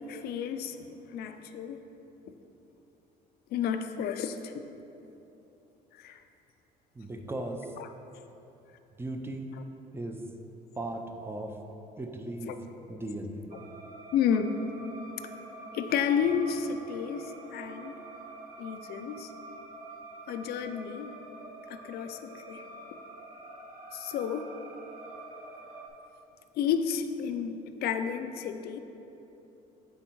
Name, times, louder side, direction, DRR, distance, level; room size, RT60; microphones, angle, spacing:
voice 1, 0.1-0.8 1.1-1.8 3.5-4.7 5.9-6.2 7.8-7.9 9.6-9.7 12.5-13.0 14.1-14.5 15.7-18.0 18.6-19.3 20.3-21.2 21.7-22.7 23.9-24.5 26.6-28.8, left 7 dB, 70° left, 8 dB, 0.4 m, -31 dB
voice 2, 7.0-7.7 9.0-9.6 9.9-10.2 10.8-11.6 12.0-12.5 12.9-13.4, right 1 dB, 15° right, 4 dB, 0.5 m, -37 dB
sound 1, 13.5-25.9, right 2 dB, 50° right, 0.8 m, -46 dB
8.1 x 3.5 x 4.5 m, 3.0 s
cardioid pair, 110°, 17 cm